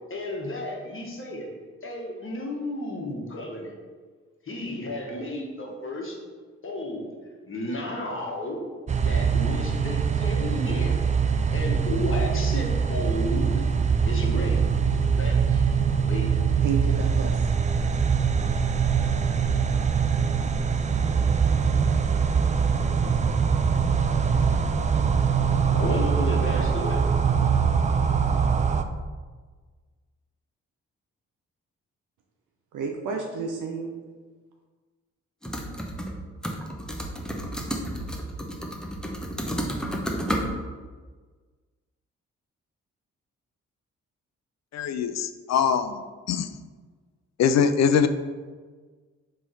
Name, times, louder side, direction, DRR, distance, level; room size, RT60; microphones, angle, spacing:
voice 1, 0.1-1.5 1.8-3.7 4.4-6.2 6.6-7.1 7.4-11.0 11.5-13.6 14.1-14.6 14.9-16.3 25.7-27.0, left 1 dB, 40° left, -1 dB, 1.3 m, -33 dB
sound 1, 8.9-28.8, right 6 dB, 25° right, 0.4 m, -23 dB
voice 2, 16.6-17.5 32.7-33.9, right 5 dB, 70° right, 1 dB, 0.6 m, -31 dB
sound 2, 35.4-36.2 36.4-40.4, equal, ahead, 0.8 m, -31 dB
voice 3, 44.7-46.5 47.4-48.1, left 7 dB, 55° left, 10 dB, 0.4 m, -23 dB
3.6 x 3.3 x 4.1 m, 1.4 s
supercardioid pair, 45°, 32 cm